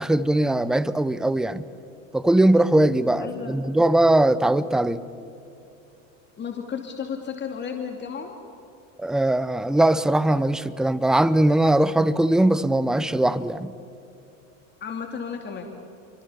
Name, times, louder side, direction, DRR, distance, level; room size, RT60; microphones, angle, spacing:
voice 1, 0.0-1.6 2.1-5.0 9.0-13.7, right 1 dB, ahead, 0.7 m, -20 dB
voice 2, 3.2-3.6 6.4-8.4 14.8-15.8, left 6 dB, 30° left, 2.7 m, -33 dB
29.5 x 24.0 x 7.1 m
supercardioid pair, 120°, 38 cm